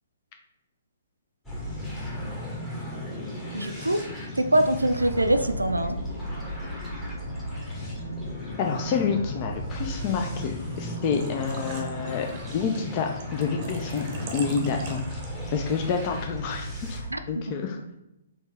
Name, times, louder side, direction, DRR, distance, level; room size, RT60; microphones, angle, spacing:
sound 1, 1.4-17.1, equal, 10° left, 1.1 m, -35 dB
voice 1, 3.5-4.0 4.4-6.0 17.1-17.2, right 1 dB, 80° right, 8 dB, 0.4 m, -23 dB
Drum, 5.3-14.3, left 1 dB, 75° left, 0.8 m, -44 dB
voice 2, 8.6-12.3 12.5-14.0 14.3-15.2 15.5-17.0 17.3-17.8, left 6 dB, 35° left, 3 dB, 0.4 m, -28 dB
Engine / Trickle dribble / Fill (with liquid), 10.8-15.6, right 4 dB, 35° right, 0.7 m, -44 dB
4.2 x 2.9 x 3.3 m, 0.88 s
figure-of-eight pair, 125°, 0 cm